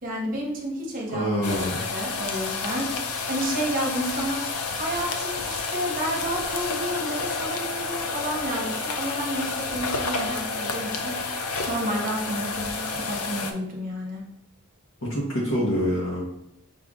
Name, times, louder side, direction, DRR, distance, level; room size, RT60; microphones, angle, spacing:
voice 1, 0.0-4.4 4.7-11.2 11.7-14.2, equal, 40° right, -1 dB, 1.0 m, -31 dB
voice 2, 1.1-1.8 15.0-16.2, equal, 60° left, -4 dB, 1.1 m, -26 dB
sound 1, 1.4-13.5, left 4 dB, 85° left, 0.6 m, -30 dB
5.4 x 2.6 x 3.6 m, 0.78 s
head